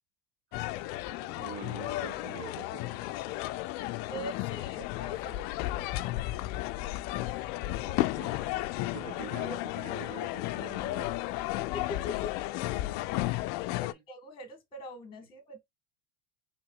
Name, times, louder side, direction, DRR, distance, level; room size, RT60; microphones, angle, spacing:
sound 1, 0.5-13.9, left 17 dB, 55° left, 0.4 m, -33 dB
voice 1, 1.1-3.0 7.7-11.2 13.1-13.3 13.7-14.0, right 8 dB, 45° right, 1.3 m, -46 dB
voice 2, 4.1-5.4 11.6-12.3 13.9-15.7, left 2 dB, 25° left, 1.4 m, -42 dB
4.6 x 3.6 x 2.3 m
supercardioid pair, 105°, 20 cm